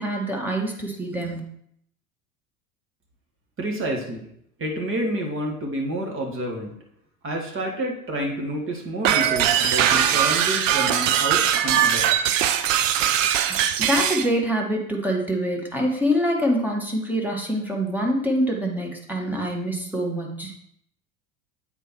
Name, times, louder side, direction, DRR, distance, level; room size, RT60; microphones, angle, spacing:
voice 1, 0.0-1.4 13.9-20.5, equal, 5° right, 0 dB, 1.5 m, -25 dB
voice 2, 3.6-4.3 4.6-6.7 7.2-12.1, right 1 dB, 30° right, 1 dB, 1.9 m, -29 dB
sound 1, 9.0-14.3, right 9 dB, 60° right, 0.6 m, -21 dB
8.0 x 4.4 x 4.5 m, 0.71 s
figure-of-eight pair, 75°, 44 cm